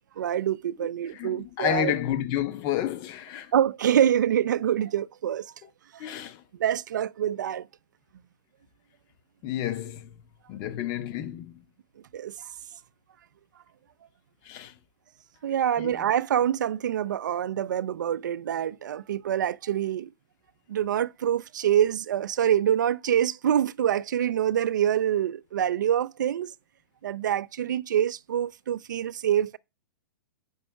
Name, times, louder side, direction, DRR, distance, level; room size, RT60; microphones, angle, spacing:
voice 1, 0.2-1.9 3.5-5.5 5.9-6.1 6.6-7.7 12.1-12.3 15.4-20.1 20.7-26.5 27.0-29.6, right 10 dB, 65° right, 0.4 m, -25 dB
voice 2, 1.1-3.5 6.0-6.4 9.4-10.1 10.5-11.6 14.5-14.7 15.8-16.0, left 11 dB, 35° left, 0.7 m, -30 dB
6.8 x 5.4 x 3.3 m
figure-of-eight pair, 110°, 11 cm